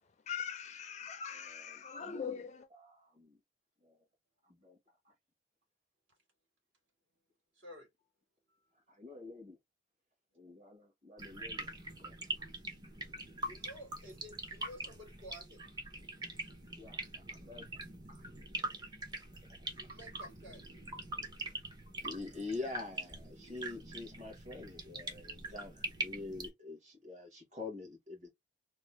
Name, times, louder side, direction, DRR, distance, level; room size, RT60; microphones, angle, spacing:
voice 1, 0.3-2.7, left 7 dB, 35° left, 0.4 m, -41 dB
voice 2, 1.3-2.4 2.7-3.4 3.8-4.0 4.4-5.1 8.7-9.6 10.4-12.5 16.8-17.8 18.1-18.3 22.0-28.3, left 3 dB, 35° right, 1.4 m, -47 dB
voice 3, 7.6-7.9 13.4-15.7 19.7-20.7, equal, 65° right, 2.0 m, -52 dB
sound 1, 11.2-26.5, right 1 dB, 20° right, 0.6 m, -43 dB
3.2 x 2.0 x 3.1 m
head